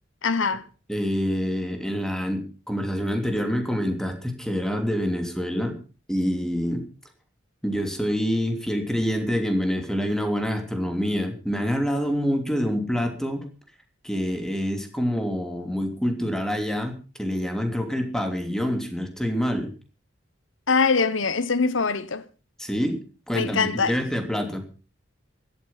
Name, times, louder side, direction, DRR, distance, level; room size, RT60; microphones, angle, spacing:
voice 1, 0.2-0.6 20.7-22.3 23.3-24.0, left 4 dB, 85° left, 1.1 m, -23 dB
voice 2, 0.9-5.8 6.1-6.8 7.6-13.5 14.0-19.7 22.6-23.0 23.3-24.6, equal, 5° left, 3.0 m, -26 dB
16.5 x 12.5 x 5.7 m
head